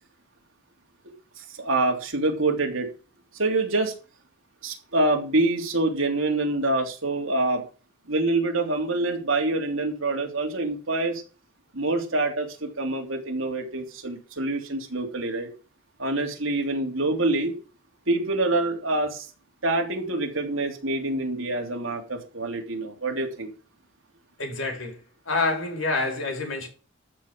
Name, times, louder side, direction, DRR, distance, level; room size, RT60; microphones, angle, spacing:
voice 1, 1.4-2.9 3.3-3.9 4.6-7.7 8.1-11.2 11.7-15.5 16.0-17.5 18.1-19.3 19.6-23.5, right 2 dB, 75° right, 3.3 m, -26 dB
voice 2, 24.4-25.0 25.3-26.7, left 3 dB, 75° left, 4.4 m, -27 dB
13.5 x 5.7 x 7.8 m
head